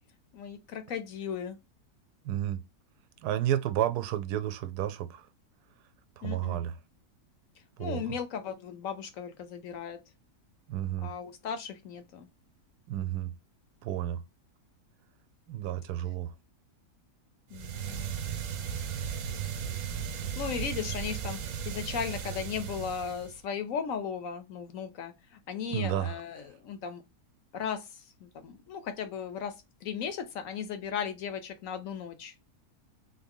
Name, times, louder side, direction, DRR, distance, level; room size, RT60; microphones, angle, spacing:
voice 1, 0.3-1.6 6.2-6.6 7.8-10.0 11.0-12.3 17.5-18.1 20.4-21.4 21.7-25.1 25.5-27.0 27.5-27.9 28.2-29.5 29.8-32.3, left 7 dB, 70° left, 0.9 m, -36 dB
voice 2, 2.2-2.6 3.2-5.3 6.2-6.8 7.8-8.1 10.7-11.1 12.9-13.3 13.8-14.2 15.5-16.3 25.7-26.2, right 12 dB, 85° right, 1.1 m, -31 dB
sound 1, 17.5-23.4, right 8 dB, 65° right, 0.9 m, -36 dB
3.8 x 2.7 x 3.5 m
omnidirectional pair, 1.7 m